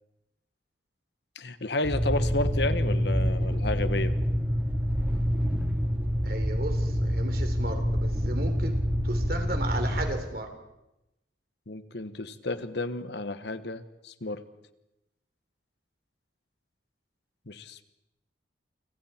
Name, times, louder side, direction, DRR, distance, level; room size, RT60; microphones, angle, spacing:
voice 1, 1.3-4.1 11.7-14.4 17.5-17.8, left 2 dB, 65° left, 11 dB, 1.3 m, -32 dB
sound 1, 1.8-10.1, equal, 10° right, 3.7 m, -27 dB
voice 2, 6.2-10.5, right 1 dB, 55° right, 6 dB, 3.5 m, -35 dB
29.5 x 25.5 x 4.5 m, 0.91 s
head